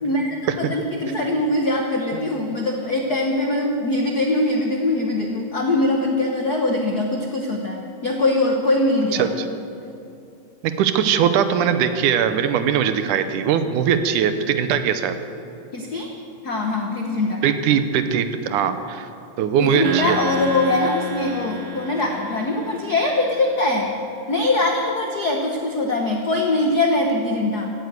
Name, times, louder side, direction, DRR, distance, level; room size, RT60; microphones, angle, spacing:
voice 1, 0.0-9.3 15.7-16.1 16.4-17.4 19.6-23.9 24.3-27.7, left 2 dB, 90° left, 1 dB, 0.8 m, -22 dB
voice 2, 9.1-9.5 10.8-15.2 17.4-19.1 19.4-20.2, right 8 dB, 80° right, 9 dB, 2.3 m, -20 dB
sound 1, 19.8-23.3, right 1 dB, 65° right, 1.6 m, -31 dB
16.0 x 9.4 x 8.1 m, 2.7 s
omnidirectional pair, 3.6 m